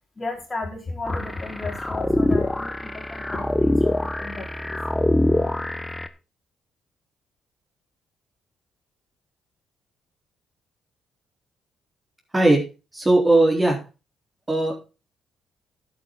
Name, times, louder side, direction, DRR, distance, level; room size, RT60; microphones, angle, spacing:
voice 1, 0.2-4.8, left 2 dB, 30° left, 0 dB, 4.4 m, -33 dB
sound 1, 1.1-6.1, left 1 dB, 10° left, 1.1 m, -24 dB
voice 2, 12.9-13.8 14.5-14.8, right 2 dB, 15° right, 1 dB, 3.8 m, -18 dB
11.0 x 9.0 x 3.8 m, 0.30 s
cardioid pair, 90°, 0 cm